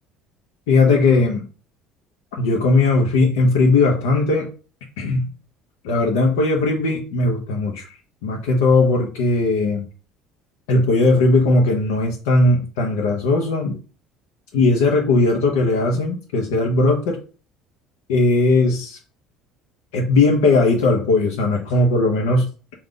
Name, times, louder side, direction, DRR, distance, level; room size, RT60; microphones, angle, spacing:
voice 1, 0.7-1.4 2.4-4.5 5.0-5.3 5.8-9.9 10.7-13.8 14.5-17.2 18.1-19.0 19.9-22.7, left 3 dB, 85° left, 0.7 m, -18 dB
3.7 x 2.3 x 3.7 m
supercardioid pair, 85°, 0 cm